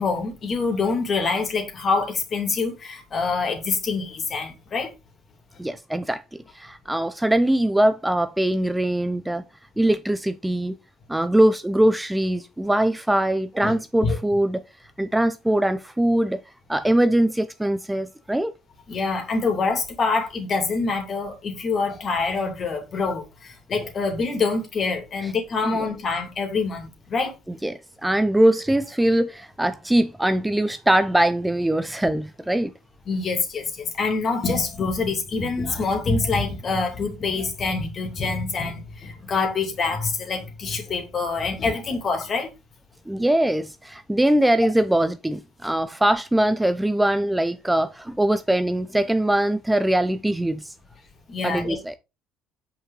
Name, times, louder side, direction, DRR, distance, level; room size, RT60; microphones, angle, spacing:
voice 1, 0.0-4.9 13.6-14.2 18.9-27.3 33.1-42.5 51.3-52.0, left 4 dB, 45° left, 2.7 m, -26 dB
voice 2, 5.6-6.2 6.5-9.4 9.8-10.8 11.1-14.6 15.0-16.4 16.7-18.5 27.6-32.7 43.1-50.7 51.4-51.9, right 1 dB, 10° right, 0.5 m, -22 dB
6.2 x 5.2 x 3.9 m
hypercardioid pair, 70°, 0 cm